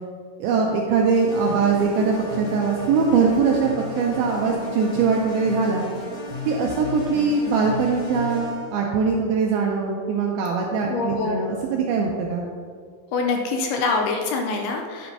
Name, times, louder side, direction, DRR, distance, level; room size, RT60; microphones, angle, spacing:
voice 1, 0.4-3.7 4.0-5.9 6.5-12.4, right 5 dB, 85° right, 0 dB, 2.2 m, -22 dB
sound 1, 1.1-8.8, left 2 dB, 60° left, 3.4 m, -34 dB
voice 2, 10.9-11.3 13.1-15.1, left 4 dB, 80° left, 2 dB, 2.4 m, -24 dB
10.5 x 7.6 x 2.7 m, 2.1 s
omnidirectional pair, 4.9 m